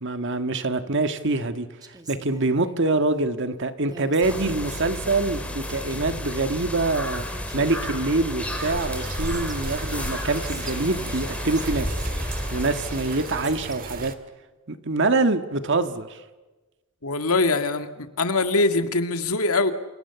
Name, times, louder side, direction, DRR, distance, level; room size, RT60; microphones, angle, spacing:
voice 1, 0.0-7.3 7.5-11.9 12.5-14.1 14.7-16.2, right 2 dB, 55° right, 8 dB, 1.8 m, -25 dB
Female speech woman speaking, 1.8-3.0 3.9-6.2 6.8-6.9 7.1-9.6 9.9-12.4 12.9-14.1, right 3 dB, 20° right, 2.0 m, -45 dB
sound 1, 4.2-13.8, left 1 dB, 5° left, 4.1 m, -32 dB
sound 2, 8.4-14.1, right 2 dB, 40° right, 2.0 m, -36 dB
voice 2, 17.0-19.7, left 3 dB, 75° left, 8 dB, 2.0 m, -23 dB
29.0 x 28.5 x 7.0 m, 1.2 s
head